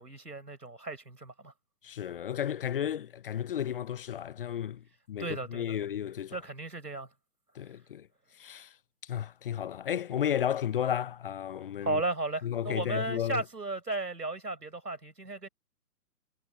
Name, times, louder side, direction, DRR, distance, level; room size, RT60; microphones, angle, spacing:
voice 1, 0.0-1.5 5.2-5.6 6.3-7.1 11.8-15.5, right 2 dB, 85° right, 5.4 m, -35 dB
voice 2, 1.8-6.4 7.5-8.1 8.4-8.8 9.0-12.0 12.4-13.4, left 10 dB, 35° left, 0.9 m, -33 dB
figure-of-eight pair, 135°, 47 cm